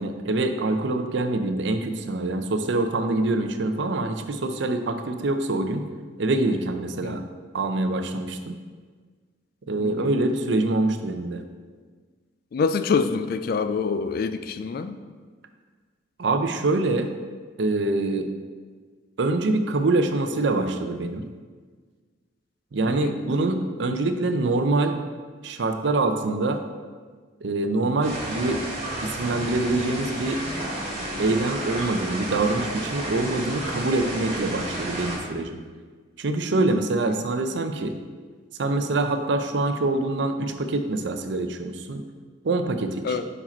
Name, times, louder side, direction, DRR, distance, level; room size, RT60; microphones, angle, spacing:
voice 1, 0.0-5.8 6.2-7.2 7.5-8.6 9.7-11.4 16.2-17.1 17.6-18.3 19.2-21.2 22.7-24.9 25.4-26.6 27.4-28.6 29.0-30.4 31.2-35.6 36.2-38.0 38.6-42.0 42.4-43.2, right 2 dB, 65° right, 7 dB, 0.5 m, -25 dB
voice 2, 12.5-15.0 22.8-23.2 37.0-37.2 43.0-43.3, left 5 dB, 50° left, 10 dB, 0.3 m, -26 dB
sound 1, 28.0-35.2, right 1 dB, 35° right, 1.5 m, -32 dB
5.4 x 4.9 x 4.3 m, 1.5 s
head